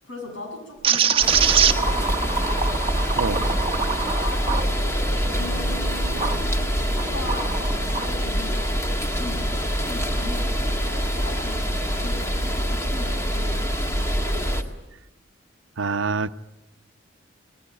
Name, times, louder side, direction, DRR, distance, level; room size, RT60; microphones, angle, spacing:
voice 1, 0.0-2.7 3.3-3.7 4.2-8.7 9.2-14.8, left 2 dB, 85° left, 7.0 m, -38 dB
sound 1, 0.8-6.4 6.9-8.1, right 7 dB, 30° right, 1.0 m, -24 dB
sound 2, 1.2-14.6, equal, 15° left, 1.8 m, -25 dB
voice 2, 3.2-3.5 15.8-16.3, right 4 dB, 90° right, 0.8 m, -25 dB
sound 3, 5.4-8.8, left 2 dB, 60° left, 3.7 m, -43 dB
27.0 x 20.5 x 9.0 m
head